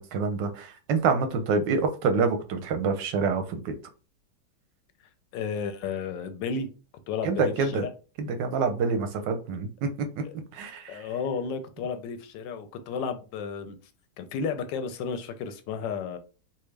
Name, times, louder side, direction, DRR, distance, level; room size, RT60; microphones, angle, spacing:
voice 1, 0.0-3.7 7.2-7.8 8.2-10.2 10.5-11.0, right 4 dB, 85° right, 1.4 m, -27 dB
voice 2, 5.3-6.7 7.1-7.9 10.2-10.3 10.9-13.8 14.2-16.2, left 5 dB, 85° left, 1.3 m, -33 dB
4.2 x 2.0 x 3.2 m
omnidirectional pair, 1.9 m